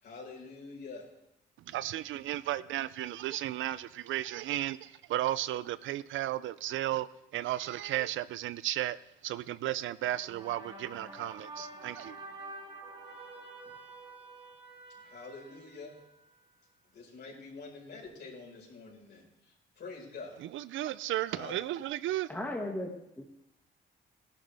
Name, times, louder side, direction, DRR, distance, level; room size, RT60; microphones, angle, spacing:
voice 1, 0.0-1.1 15.0-16.0 16.9-20.4 21.3-21.5, left 4 dB, 60° left, 5.1 m, -46 dB
voice 2, 1.7-7.1 7.3-9.0 9.2-12.2 20.5-22.3, right 14 dB, 80° right, 0.5 m, -34 dB
sound 1, 10.0-16.4, right 2 dB, 25° right, 3.3 m, -48 dB
voice 3, 22.3-23.2, left 1 dB, 10° left, 1.8 m, -36 dB
17.0 x 11.5 x 3.5 m
cardioid pair, 90°, 20 cm